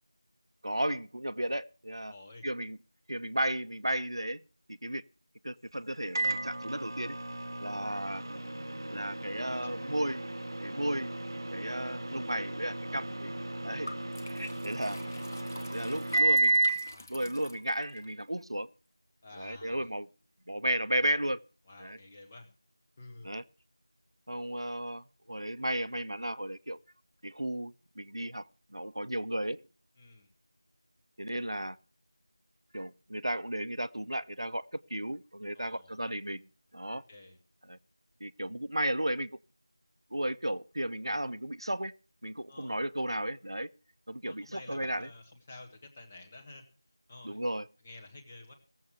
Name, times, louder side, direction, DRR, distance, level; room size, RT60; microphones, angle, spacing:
voice 1, 0.6-2.1 2.4-2.8 3.1-4.4 4.7-5.0 5.4-7.2 7.6-8.2 8.9-10.2 10.6-11.1 11.5-13.3 13.6-13.9 14.3-15.0 15.7-16.6 17.1-18.7 19.4-20.1 20.5-21.4 21.8-22.0 23.2-23.4 24.3-26.8 27.2-28.4 28.7-29.6 31.2-31.8 32.7-36.4 36.7-37.0 37.7-37.8 38.2-39.3 40.1-41.9 42.2-43.7 44.1-45.1 47.2-47.7, right 1 dB, 75° right, 0.8 m, -34 dB
voice 2, 2.1-2.5 9.3-9.9 11.6-11.7 16.9-17.2 19.2-19.9 21.7-22.5 23.0-23.3 30.0-30.3 35.5-36.0 36.9-37.4 41.0-41.3 42.5-42.8 44.2-46.6 47.1-47.4 47.8-48.5, left 2 dB, 15° left, 1.2 m, -51 dB
Microwave oven, 6.2-16.9, right 2 dB, 50° right, 0.8 m, -33 dB
Liquid, 13.9-18.1, left 1 dB, 35° left, 1.3 m, -48 dB
16.5 x 7.6 x 6.7 m
figure-of-eight pair, 175°, 3 cm